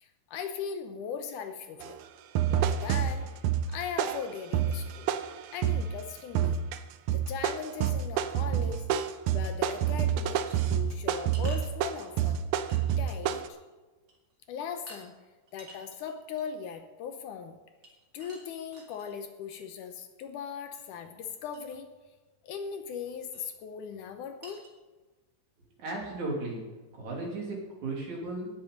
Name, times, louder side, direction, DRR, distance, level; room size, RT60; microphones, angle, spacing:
voice 1, 0.0-2.0 2.5-3.3 3.7-5.1 5.5-6.6 7.1-8.8 9.3-12.4 13.0-13.6 14.5-15.1 15.5-17.6 18.1-21.9 22.4-24.6, left 7 dB, 75° left, 7 dB, 2.2 m, -39 dB
sound 1, 1.8-1.9 2.3-5.9 6.3-6.8 7.1-13.5, right 9 dB, 80° right, 1.9 m, -28 dB
sound 2, 10.5-12.3 12.7-13.3 13.6-13.7 14.1-14.3 14.9-15.1 15.5-16.6 17.8-19.1 20.7-20.9 21.2-21.3 21.5-21.6 23.3-23.5 24.0-24.1 24.4-24.7, right 1 dB, 35° right, 2.4 m, -51 dB
voice 2, 25.8-26.6 26.9-28.5, right 2 dB, 60° right, -2 dB, 4.1 m, -35 dB
18.5 x 7.7 x 5.2 m, 1.2 s
omnidirectional pair, 3.9 m